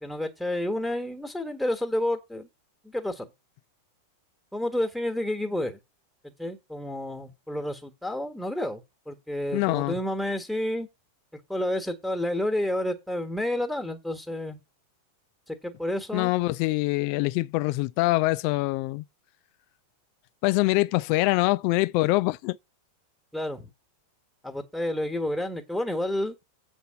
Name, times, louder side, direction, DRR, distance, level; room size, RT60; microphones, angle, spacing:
voice 1, 0.0-2.5 2.8-3.3 4.5-5.8 6.2-10.9 11.5-14.6 15.5-16.3 23.3-23.7 24.4-26.3, left 1 dB, ahead, 1.4 m, -30 dB
voice 2, 9.5-9.9 16.1-19.0 20.4-22.6, left 20 dB, 45° left, 0.4 m, -24 dB
8.1 x 4.3 x 6.9 m
figure-of-eight pair, 90°, 0 cm